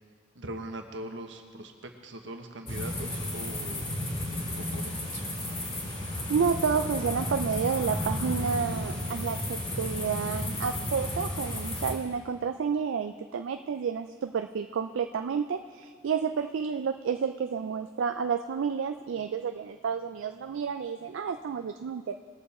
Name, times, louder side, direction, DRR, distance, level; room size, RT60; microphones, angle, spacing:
voice 1, 0.3-3.9 4.7-5.4, right 1 dB, 70° right, 5 dB, 1.1 m, -41 dB
sound 1, 2.7-11.9, left 1 dB, 30° left, 2.1 m, -33 dB
voice 2, 6.3-22.2, right 6 dB, 90° right, 7 dB, 0.4 m, -30 dB
20.0 x 7.0 x 4.3 m, 2.1 s
head